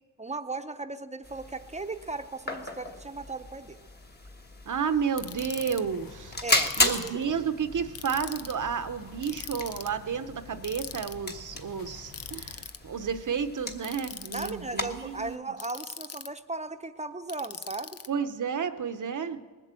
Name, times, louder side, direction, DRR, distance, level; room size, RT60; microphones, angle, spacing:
voice 1, 0.2-3.8 6.4-7.3 14.3-18.0, right 3 dB, 20° right, 8 dB, 0.8 m, -37 dB
sound 1, 1.2-15.4, left 2 dB, 25° left, 1.3 m, -35 dB
voice 2, 4.7-6.4 6.8-15.4 18.1-19.4, right 7 dB, 55° right, 10 dB, 0.8 m, -31 dB
sound 2, 5.2-12.6, left 4 dB, 70° left, 1.0 m, -50 dB
Ratchet pawl, 5.2-5.8 6.6-7.2 8.0-8.6 9.2-9.9 10.6-11.1 12.1-12.8 13.8-14.5 15.6-16.4 17.3-18.1, left 7 dB, 40° left, 0.6 m, -40 dB
19.5 x 7.6 x 7.6 m, 1.3 s
cardioid pair, 75°, 36 cm